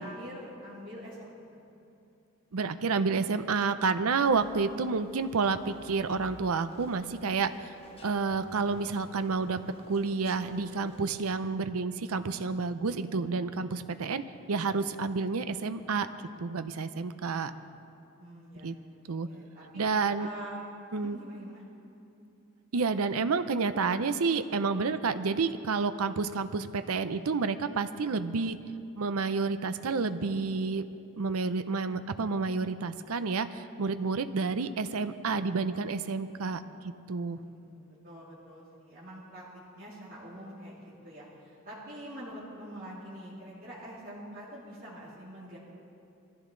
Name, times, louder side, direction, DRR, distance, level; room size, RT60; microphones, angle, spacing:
voice 1, 0.0-1.6 18.2-19.8 20.2-21.6 37.3-45.6, equal, 40° right, -9 dB, 2.8 m, -45 dB
voice 2, 2.5-7.7 8.0-9.6 9.9-14.2 14.5-16.1 16.4-17.5 18.6-18.7 19.1-19.3 19.7-20.3 20.9-21.2 22.7-28.6 29.0-30.8 31.2-36.6 37.1-37.4, right 4 dB, 90° right, 11 dB, 0.6 m, -29 dB
sound 1, 4.2-11.4, left 1 dB, 25° left, 1.1 m, -54 dB
21.5 x 14.0 x 3.8 m, 2.7 s
head